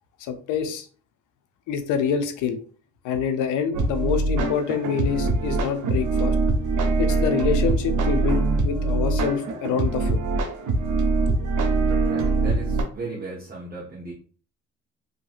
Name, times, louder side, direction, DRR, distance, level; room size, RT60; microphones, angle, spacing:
voice 1, 0.2-0.9 1.7-2.6 3.0-6.4 7.0-10.2, left 7 dB, 90° left, 8 dB, 0.5 m, -26 dB
sound 1, 3.7-12.8, right 3 dB, 75° right, 0.7 m, -23 dB
voice 2, 12.0-14.1, right 3 dB, 30° right, -6 dB, 1.0 m, -36 dB
2.8 x 2.6 x 2.4 m, 0.42 s
cardioid pair, 90°, 30 cm